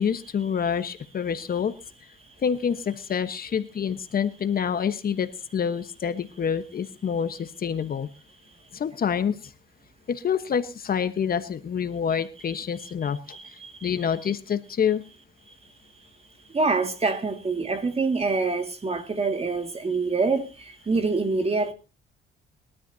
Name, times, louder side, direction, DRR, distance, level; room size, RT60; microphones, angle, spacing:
voice 1, 0.0-1.7 2.4-8.1 8.7-9.5 10.1-15.0, left 7 dB, 50° left, 1.2 m, -27 dB
voice 2, 13.3-13.9 16.5-21.7, right 3 dB, 30° right, 2.1 m, -26 dB
22.0 x 12.5 x 2.8 m
cardioid pair, 90°, 20 cm